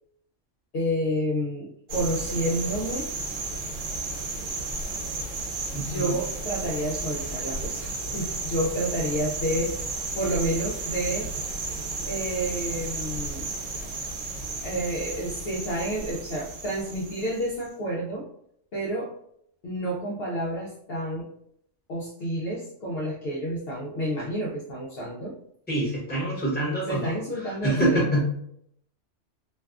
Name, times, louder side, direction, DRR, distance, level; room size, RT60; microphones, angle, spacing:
voice 1, 0.7-3.1 5.7-9.9 10.1-11.3 12.1-13.5 14.6-18.3 18.7-19.1 19.6-21.3 21.9-25.4 26.9-28.1, equal, 65° left, -3 dB, 0.7 m, -30 dB
sound 1, 1.9-17.7, right 3 dB, 80° right, 1.0 m, -33 dB
voice 2, 5.7-6.1 25.7-27.0 27.6-28.2, right 1 dB, 10° left, -6 dB, 0.9 m, -25 dB
2.6 x 2.3 x 2.3 m, 0.70 s
omnidirectional pair, 1.3 m